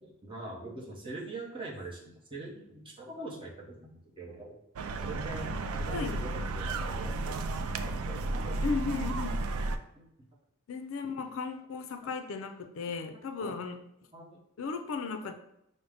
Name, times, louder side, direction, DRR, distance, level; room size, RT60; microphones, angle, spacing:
voice 1, 0.0-4.6 5.0-8.7 9.9-10.0 12.0-12.1 13.4-13.6 14.1-14.4 15.2-15.3, right 2 dB, 25° right, -3 dB, 0.8 m, -43 dB
sound 1, 4.8-9.8, right 2 dB, 85° right, 0.3 m, -33 dB
voice 2, 8.6-9.4 10.7-13.8 14.6-15.3, left 5 dB, 65° left, 7 dB, 0.4 m, -35 dB
5.2 x 2.1 x 3.4 m, 0.81 s
head